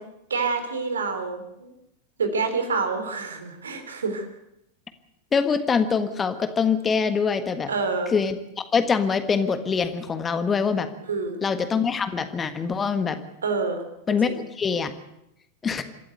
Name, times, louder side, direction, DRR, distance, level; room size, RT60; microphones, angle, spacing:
voice 1, 0.3-1.7 2.2-4.3 7.7-8.1 11.1-11.4 13.4-13.8 14.2-14.4, right 4 dB, 70° right, 7 dB, 3.4 m, -27 dB
voice 2, 5.3-7.7 8.1-8.4 8.7-10.9 11.4-13.2 14.1-14.9 15.6-15.8, left 5 dB, 20° left, 10 dB, 1.6 m, -24 dB
26.5 x 13.5 x 8.1 m, 0.82 s
figure-of-eight pair, 90°, 0 cm